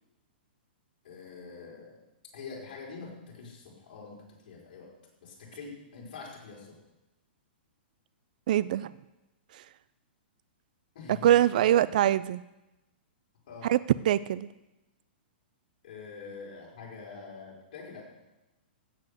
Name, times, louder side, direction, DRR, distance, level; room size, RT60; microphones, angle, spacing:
voice 1, 1.0-2.0 2.3-4.2 4.4-4.9 5.2-6.7 10.9-11.3 13.5-13.7 15.8-18.0, left 4 dB, 50° left, -3 dB, 4.8 m, -45 dB
voice 2, 8.5-8.9 9.5-9.6 11.1-12.4 13.6-13.8 14.0-14.5, right 12 dB, 50° right, 17 dB, 0.3 m, -24 dB
15.0 x 8.5 x 6.6 m, 0.99 s
hypercardioid pair, 170°, 6 cm